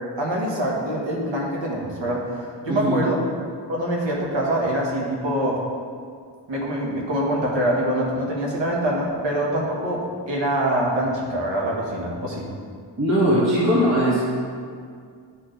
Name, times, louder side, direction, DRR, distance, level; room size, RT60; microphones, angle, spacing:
voice 1, 0.2-3.2 3.7-5.6 6.5-12.5, right 1 dB, 75° right, -3 dB, 1.6 m, -24 dB
voice 2, 2.7-3.0 13.0-14.2, equal, 35° right, -10 dB, 1.8 m, -19 dB
11.0 x 4.5 x 3.3 m, 2.1 s
wide cardioid pair, 90°, 44 cm